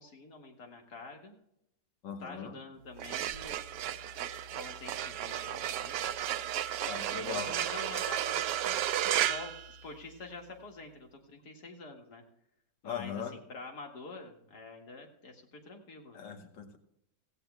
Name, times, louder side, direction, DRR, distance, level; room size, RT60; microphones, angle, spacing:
voice 1, 0.0-1.4 2.2-3.5 4.2-6.0 7.1-8.8 9.1-12.2 12.8-16.2, left 3 dB, 65° left, 2 dB, 2.5 m, -47 dB
voice 2, 2.0-2.5 6.9-7.5 12.8-13.3 16.1-16.8, left 7 dB, 85° left, 6 dB, 1.9 m, -39 dB
sound 1, 2.9-10.3, right 11 dB, 85° right, 1.3 m, -34 dB
16.5 x 16.0 x 2.3 m, 0.78 s
omnidirectional pair, 1.9 m